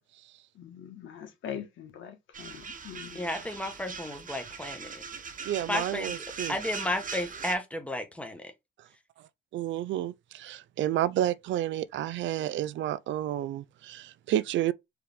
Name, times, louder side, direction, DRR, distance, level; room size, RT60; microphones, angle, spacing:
voice 1, 0.6-3.4, left 9 dB, 80° left, 1.4 m, -42 dB
sound 1, 2.3-7.5, right 5 dB, 40° right, 1.1 m, -40 dB
voice 2, 3.1-4.9 5.7-6.1 6.5-8.4, left 1 dB, 5° left, 1.2 m, -32 dB
voice 3, 5.5-6.6 9.5-14.7, right 12 dB, 70° right, 0.4 m, -30 dB
4.8 x 3.2 x 3.5 m
cardioid pair, 90°, 20 cm